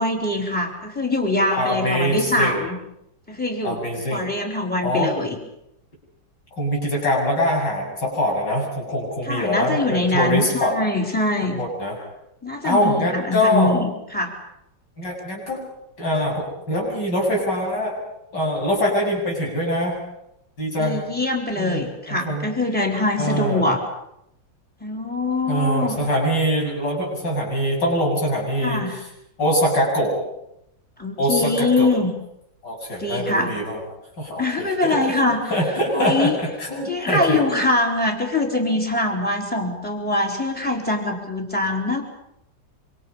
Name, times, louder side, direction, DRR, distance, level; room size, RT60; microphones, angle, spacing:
voice 1, 0.0-2.8 3.3-3.8 4.1-5.4 9.3-11.6 12.4-14.4 20.8-23.8 24.8-25.9 28.6-29.0 31.0-32.1 33.0-33.6 34.4-35.4 35.9-36.4 36.9-42.0, left 2 dB, 5° left, 1 dB, 4.1 m, -23 dB
voice 2, 1.6-2.6 3.6-4.3 4.8-5.1 6.6-10.7 11.4-12.0 12.6-13.8 15.0-15.6 16.0-18.0 18.3-20.0 20.6-21.0 21.6-22.5 23.2-23.7 25.5-28.9 29.4-30.2 31.2-31.9 32.6-33.8 34.2-37.4, equal, 65° left, -1 dB, 8.8 m, -23 dB
27.0 x 26.0 x 5.6 m, 0.81 s
omnidirectional pair, 2.0 m